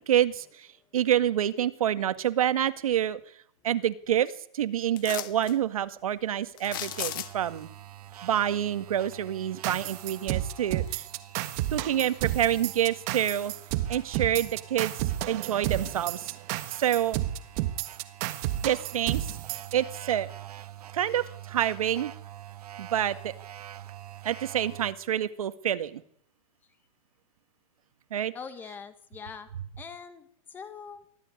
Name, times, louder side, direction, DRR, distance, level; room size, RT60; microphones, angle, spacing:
voice 1, 0.1-0.7 0.9-3.2 3.6-7.7 8.2-11.0 11.7-13.5 13.9-14.9 15.3-16.3 16.7-17.2 18.6-19.3 19.7-20.3 20.9-22.1 22.8-23.3 24.2-26.0 28.1-28.3, right 10 dB, 70° right, 12 dB, 2.0 m, -27 dB
sound 1, 5.0-5.6 6.6-7.6 10.1-10.2 10.7-11.4 11.8-12.9 13.4-13.5, left 14 dB, 35° left, 1.5 m, -37 dB
sound 2, 6.6-24.9, right 12 dB, 85° right, 1.7 m, -46 dB
sound 3, 9.6-19.7, right 14 dB, 25° right, 1.5 m, -31 dB
voice 2, 28.3-29.5 29.8-31.0, left 6 dB, 10° left, 13 dB, 1.1 m, -43 dB
24.0 x 15.5 x 9.8 m, 0.64 s
supercardioid pair, 180°, 19 cm